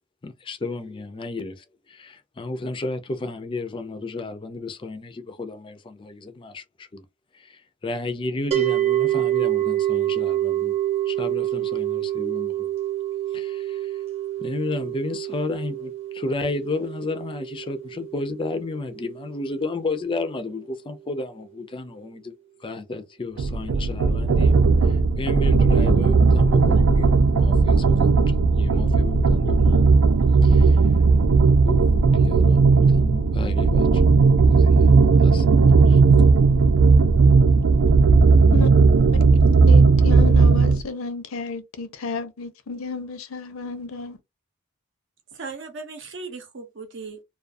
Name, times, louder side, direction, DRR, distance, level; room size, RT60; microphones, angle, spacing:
voice 1, 0.2-7.0 7.3-10.8 11.1-12.7 13.3-13.9 14.4-22.3 22.6-29.8 30.4-30.8 31.7-35.0 35.2-36.0, left 3 dB, 25° left, 0.4 m, -33 dB
sound 1, 8.5-19.7, right 13 dB, 30° right, 0.8 m, -27 dB
sound 2, 23.4-40.8, right 4 dB, 90° right, 0.4 m, -16 dB
voice 2, 39.7-44.2, left 4 dB, 85° left, 0.6 m, -32 dB
voice 3, 45.3-47.2, right 4 dB, 60° right, 0.7 m, -37 dB
2.3 x 2.3 x 2.5 m
head